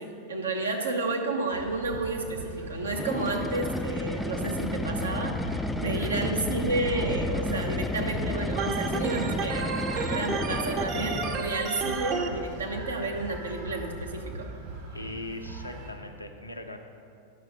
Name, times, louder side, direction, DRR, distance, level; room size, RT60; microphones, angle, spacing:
voice 1, 0.0-9.7 9.9-14.5, right 2 dB, 75° right, 2 dB, 1.0 m, -31 dB
sound 1, 1.5-15.9, equal, 55° right, 2.0 m, -39 dB
sound 2, 2.9-11.7, left 1 dB, 5° left, 0.3 m, -32 dB
Organ, 8.6-12.3, right 5 dB, 35° right, 0.8 m, -32 dB
voice 2, 14.9-16.8, left 2 dB, 85° left, 4 dB, 0.7 m, -40 dB
9.9 x 6.3 x 5.3 m, 2.4 s
figure-of-eight pair, 90°, 0 cm